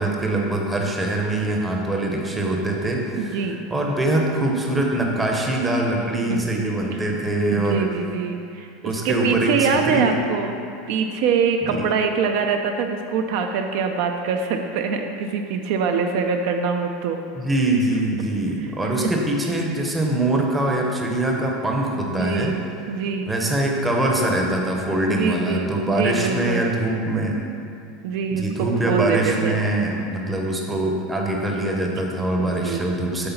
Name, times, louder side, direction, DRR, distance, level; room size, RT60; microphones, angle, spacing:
voice 1, 0.0-7.9 8.8-10.2 11.7-11.9 17.3-22.5 23.3-27.4 28.3-33.3, right 1 dB, 10° right, 0 dB, 0.7 m, -23 dB
voice 2, 3.2-3.6 6.3-6.4 6.9-7.0 7.5-10.6 10.9-17.2 19.0-19.1 22.0-23.3 25.2-26.8 28.0-28.4 28.9-29.5 32.4-32.9, right 5 dB, 55° right, 5 dB, 0.4 m, -24 dB
7.9 x 3.8 x 5.7 m, 2.4 s
supercardioid pair, 170°, 0 cm